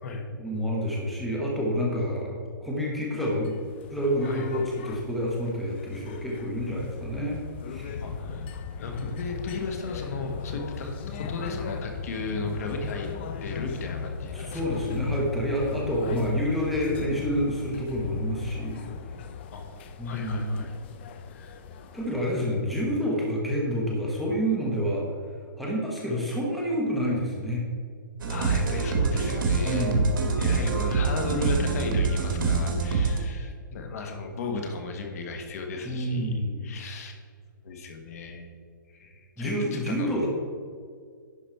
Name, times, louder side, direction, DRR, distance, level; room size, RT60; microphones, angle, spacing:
voice 1, 0.4-3.6 3.9-7.4 7.7-8.0 14.3-18.9 20.0-20.7 21.9-25.0 25.6-27.6 29.6-30.4 35.8-36.7 39.4-40.3, equal, ahead, -5 dB, 1.0 m, -28 dB
sound 1, 3.4-22.6, left 5 dB, 30° left, 0.4 m, -37 dB
voice 2, 8.0-8.5 8.7-13.1 13.4-14.6 19.5-19.8 20.0-20.7 21.3-21.6 28.3-30.0 30.4-36.3 36.6-37.1 37.6-38.5 38.9-40.2, left 3 dB, 50° left, 4 dB, 1.3 m, -35 dB
sound 2, 28.2-33.2, right 4 dB, 85° right, 1.8 m, -25 dB
11.0 x 5.2 x 4.4 m, 2.1 s
hypercardioid pair, 165°, 11 cm